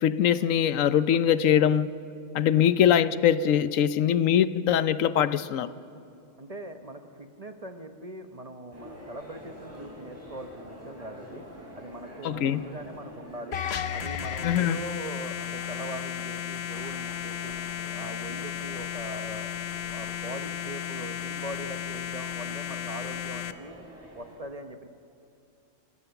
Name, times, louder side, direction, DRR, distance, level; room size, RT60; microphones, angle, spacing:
voice 1, 0.0-1.9 2.3-5.7 12.2-12.7 14.4-14.8, left 9 dB, 85° left, 14 dB, 1.1 m, -22 dB
voice 2, 6.4-11.5 11.7-13.6 13.9-17.6 17.9-19.5 19.9-23.8 24.1-24.9, right 1 dB, 30° right, 7 dB, 1.0 m, -41 dB
sound 1, 8.7-24.4, equal, 10° right, 6.6 m, -47 dB
sound 2, 13.5-23.5, left 10 dB, 60° left, 1.0 m, -34 dB
27.5 x 16.5 x 7.0 m, 2.6 s
omnidirectional pair, 1.3 m